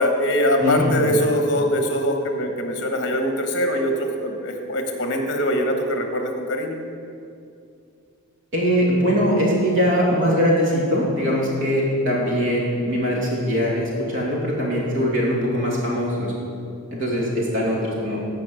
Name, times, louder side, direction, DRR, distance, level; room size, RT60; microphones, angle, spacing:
voice 1, 0.0-6.8, equal, 50° left, 4 dB, 1.3 m, -22 dB
voice 2, 0.6-1.0 8.5-16.3 16.9-18.2, equal, 55° right, -4 dB, 2.6 m, -21 dB
15.0 x 5.2 x 6.4 m, 2.4 s
head